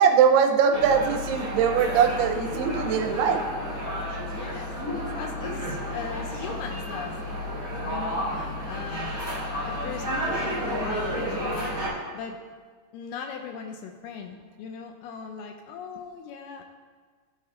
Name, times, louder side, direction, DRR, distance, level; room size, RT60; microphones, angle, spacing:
voice 1, 0.0-3.4, right 7 dB, 80° right, 5 dB, 2.4 m, -21 dB
sound 1, 0.7-11.9, equal, 20° left, 1.4 m, -31 dB
voice 2, 4.3-7.1 7.4-7.5 7.8-9.1 9.7-11.8 12.1-12.4 12.9-16.6, left 6 dB, 80° left, 4 dB, 2.3 m, -39 dB
13.0 x 4.4 x 3.7 m, 1.5 s
omnidirectional pair, 4.8 m